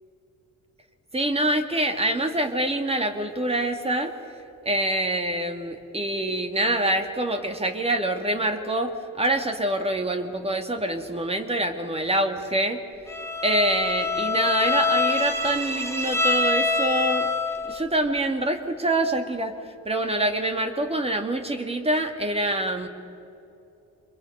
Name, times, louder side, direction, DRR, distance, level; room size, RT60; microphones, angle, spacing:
voice 1, 1.1-4.1 4.6-12.8 13.4-17.3 17.7-19.5 19.9-22.9, right 1 dB, 20° right, 6 dB, 2.0 m, -25 dB
Bowed string instrument, 13.1-17.8, left 3 dB, 10° left, 1.6 m, -25 dB
27.0 x 22.5 x 5.5 m, 2.8 s
cardioid pair, 90°, 30 cm